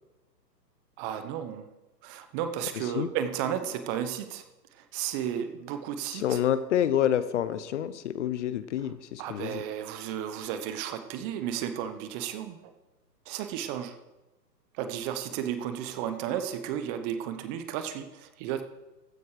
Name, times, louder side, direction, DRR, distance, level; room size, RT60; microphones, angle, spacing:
voice 1, 1.0-1.7 2.0-4.4 4.7-6.4 9.2-12.7 13.3-14.0 14.7-18.6, right 9 dB, 25° right, 9 dB, 1.0 m, -33 dB
voice 2, 6.1-9.6, left 10 dB, 45° left, 14 dB, 0.9 m, -28 dB
15.0 x 11.0 x 5.0 m, 1.0 s
hypercardioid pair, 135°, 50 cm